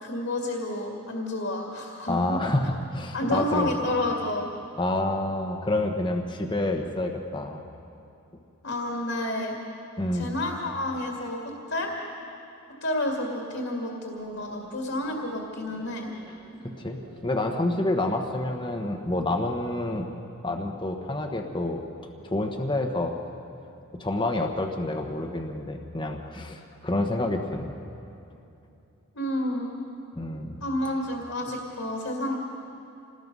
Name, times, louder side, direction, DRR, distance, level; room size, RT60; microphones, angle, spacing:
voice 1, 0.0-2.4 3.1-4.5 8.6-9.5 10.1-11.9 12.8-16.1 29.1-29.8 30.6-32.4, left 1 dB, 60° left, 0 dB, 2.2 m, -30 dB
voice 2, 2.1-3.7 4.8-7.6 10.0-10.3 16.8-20.1 20.4-21.8 22.2-23.2 23.9-27.7 30.2-30.6, left 1 dB, 20° left, 3 dB, 1.0 m, -28 dB
sound 1, 14.1-20.0, right 1 dB, 90° right, 4.6 m, -49 dB
27.0 x 19.5 x 5.4 m, 2.7 s
head